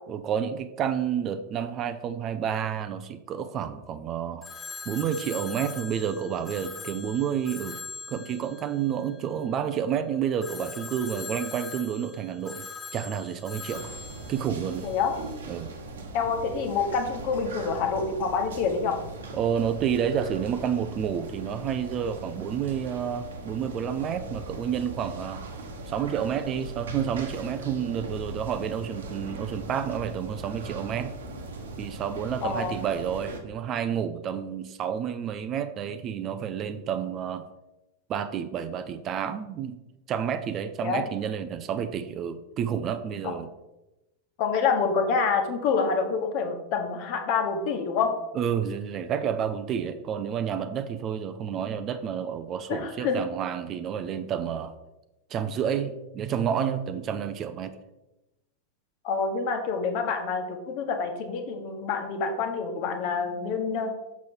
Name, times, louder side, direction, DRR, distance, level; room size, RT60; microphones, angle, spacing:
voice 1, 0.1-4.5 4.9-7.8 8.1-12.7 12.9-13.9 14.3-14.9 15.5-15.7 19.3-25.4 25.9-31.2 31.8-37.4 38.1-39.8 40.1-43.5 48.3-54.7 55.3-57.8, right 8 dB, 30° right, 11 dB, 0.5 m, -30 dB
Telephone, 4.4-9.7 10.4-15.3, left 5 dB, 20° left, 1.6 m, -42 dB
sound 1, 13.7-33.4, right 2 dB, 65° right, 1.2 m, -40 dB
voice 2, 16.1-19.0 32.4-32.8 40.8-41.0 43.2-43.3 44.4-48.2 52.7-53.2 59.0-63.9, left 5 dB, 45° left, 5 dB, 1.3 m, -27 dB
7.0 x 6.4 x 4.4 m, 0.97 s
figure-of-eight pair, 90°, 0 cm